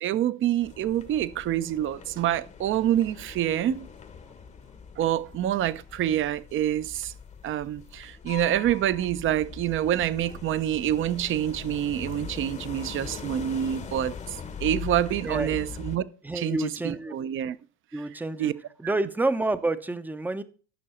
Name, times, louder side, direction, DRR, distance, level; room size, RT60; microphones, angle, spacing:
voice 1, 0.0-3.9 5.0-7.1 7.4-16.0 16.3-17.6 17.9-18.0 18.4-18.5 18.8-18.9, right 11 dB, 40° right, 0.8 m, -27 dB
sound 1, 0.6-16.0, left 7 dB, 20° left, 1.0 m, -41 dB
voice 2, 15.2-15.6 16.2-17.1 17.9-18.5 18.8-20.4, right 2 dB, 5° right, 0.7 m, -28 dB
13.5 x 6.0 x 4.4 m
cardioid pair, 130°, 32 cm